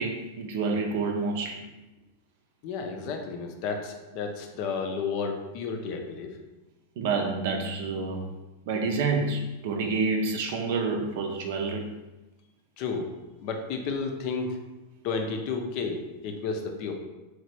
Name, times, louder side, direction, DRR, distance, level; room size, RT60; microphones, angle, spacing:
voice 1, 0.0-1.6 7.0-8.3 8.7-11.9, right 4 dB, 50° right, 3 dB, 0.5 m, -28 dB
voice 2, 2.6-6.3 12.8-13.1 13.4-14.6 15.0-16.9, left 4 dB, 45° left, 4 dB, 0.5 m, -32 dB
3.9 x 3.2 x 3.1 m, 1.1 s
figure-of-eight pair, 90°, 0 cm